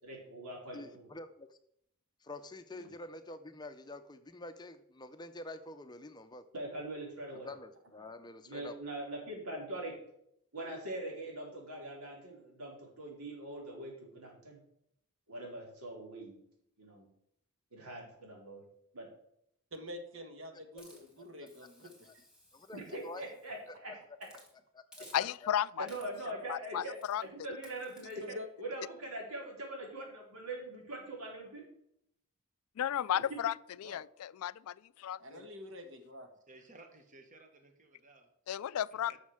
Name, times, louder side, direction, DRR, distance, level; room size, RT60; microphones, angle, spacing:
voice 1, 0.0-1.2 2.7-2.9 6.5-7.5 8.4-10.0 10.5-14.6 15.3-16.4 16.8-17.1 17.7-18.6 18.9-19.1 22.7-24.3 25.8-31.6, right 1 dB, 90° right, 4.1 m, -43 dB
voice 2, 0.7-1.6 2.2-6.4 7.4-8.8 22.1-22.2 22.5-23.2 25.0-25.1, left 2 dB, 20° left, 0.6 m, -47 dB
voice 3, 19.7-22.1 22.9-23.0 28.2-28.5 33.8-34.0 35.2-36.3, left 1 dB, 60° right, 1.6 m, -47 dB
Hiss, 20.8-23.7 24.2-24.5 24.9-25.5 25.9-26.3 27.0-27.3 27.6-28.1, left 1 dB, 5° right, 2.7 m, -59 dB
voice 4, 25.1-25.9 26.3-27.2 32.8-33.5 33.8-35.4 38.5-39.2, left 10 dB, 75° left, 0.3 m, -34 dB
voice 5, 36.5-38.3 39.1-39.2, right 2 dB, 35° right, 1.4 m, -57 dB
11.0 x 6.5 x 6.4 m
head